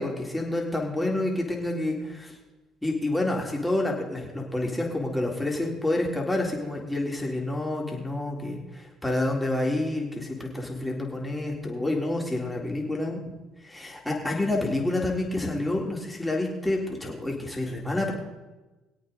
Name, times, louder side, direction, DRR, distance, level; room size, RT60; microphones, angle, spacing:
voice 1, 0.0-2.3 2.8-13.2 13.6-18.1, left 2 dB, 10° left, -1 dB, 3.7 m, -28 dB
22.5 x 8.5 x 4.1 m, 1.1 s
supercardioid pair, 70°, 0 cm